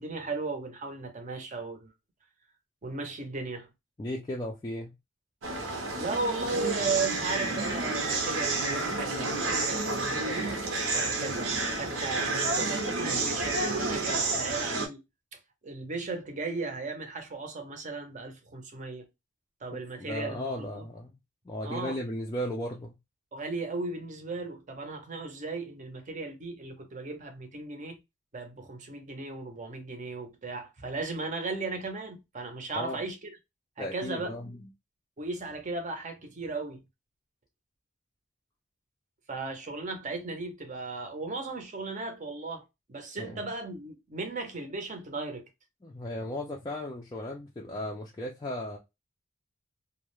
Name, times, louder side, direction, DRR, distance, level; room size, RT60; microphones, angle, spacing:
voice 1, 0.0-1.9 2.8-3.7 6.0-10.6 10.9-15.0 15.6-19.1 19.6-20.9 21.6-22.0 23.3-28.0 28.3-33.4 33.8-34.3 35.2-36.8 39.3-45.4, right 3 dB, 40° right, 0.6 m, -36 dB
voice 2, 4.0-4.9 19.7-21.1 21.5-22.9 32.8-33.0 33.8-34.6 43.2-43.4 45.8-48.8, left 1 dB, 20° left, 0.3 m, -36 dB
sound 1, 5.4-14.9, right 3 dB, 80° right, 0.7 m, -30 dB
2.3 x 2.1 x 2.9 m
head